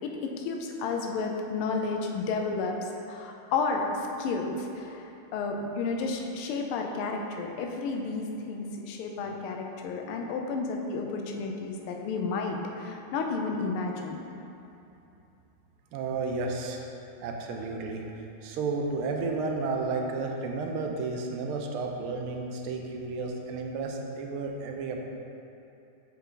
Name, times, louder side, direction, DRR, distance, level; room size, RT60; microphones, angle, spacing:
voice 1, 0.0-14.2, left 4 dB, 90° left, 2 dB, 1.5 m, -32 dB
voice 2, 15.9-16.8 17.2-18.0 18.4-25.0, right 3 dB, 90° right, 2 dB, 1.6 m, -32 dB
7.1 x 4.5 x 3.8 m, 2.8 s
omnidirectional pair, 2.3 m